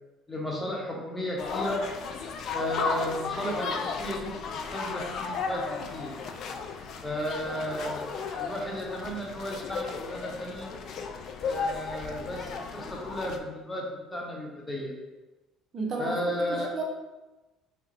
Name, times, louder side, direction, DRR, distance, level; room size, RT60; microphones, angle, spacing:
voice 1, 0.3-1.9 2.5-6.1 7.0-10.7 11.4-14.9 16.0-16.7, equal, 15° left, -1 dB, 0.9 m, -34 dB
sound 1, 1.4-13.4, left 5 dB, 60° left, 0.3 m, -35 dB
voice 2, 15.7-16.8, right 3 dB, 50° right, 0 dB, 0.7 m, -33 dB
2.9 x 2.1 x 3.8 m, 1.1 s
supercardioid pair, 75°, 0 cm